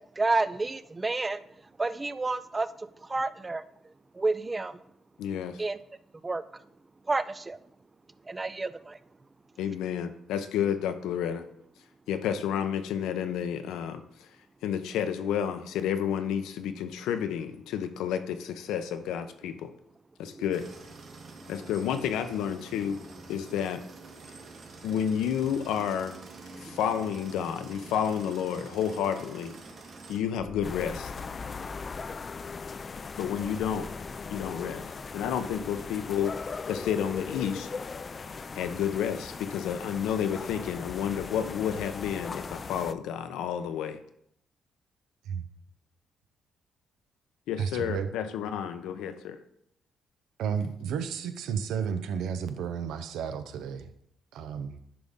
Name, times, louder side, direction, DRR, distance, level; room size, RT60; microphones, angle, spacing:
voice 1, 0.2-1.4 1.8-3.6 4.1-4.8 5.6-5.8 6.2-6.4 7.1-7.6 8.3-9.0 20.3-20.4, right 3 dB, 20° right, 14 dB, 0.4 m, -30 dB
voice 2, 5.2-5.6 9.6-11.5 12.1-14.3 14.6-19.7 20.2-20.7 21.5-23.0 23.3-23.8 24.8-26.1 26.6-29.5 30.1-31.1 33.2-33.9 34.3-34.8 35.1-37.7 38.5-44.0 47.5-49.4, left 8 dB, 90° left, 9 dB, 0.7 m, -30 dB
sound 1, 20.5-30.2, right 3 dB, 60° right, 1.8 m, -47 dB
sound 2, 30.4-31.8 33.4-34.8, left 1 dB, 20° left, 0.8 m, -47 dB
sound 3, 30.6-42.9, left 4 dB, 35° left, 0.4 m, -39 dB
voice 3, 47.6-48.1 50.4-53.9 54.3-54.8, right 7 dB, 85° right, 10 dB, 0.7 m, -32 dB
10.5 x 5.3 x 3.6 m, 0.73 s
cardioid pair, 90°, 0 cm